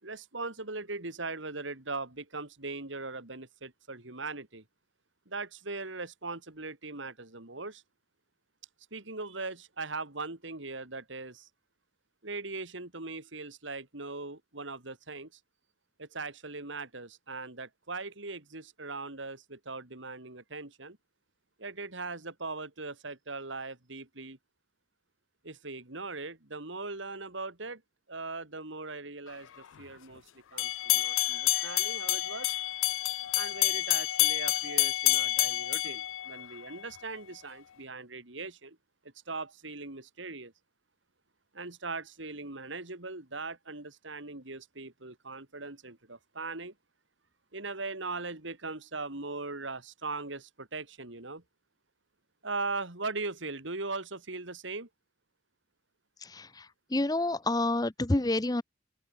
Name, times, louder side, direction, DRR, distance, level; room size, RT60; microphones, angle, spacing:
voice 1, 0.0-4.6 5.3-7.8 8.9-11.5 12.2-15.4 16.0-21.0 21.6-24.4 25.4-27.8 28.1-30.2 30.5-32.5 33.3-38.8 39.3-40.5 41.5-46.7 47.5-51.4 52.4-54.9, right 3 dB, 75° right, 2.9 m, -40 dB
sound 1, 30.6-36.8, left 17 dB, 85° left, 0.4 m, -28 dB
voice 2, 56.3-56.6 56.9-58.6, left 2 dB, 20° left, 0.7 m, -28 dB
head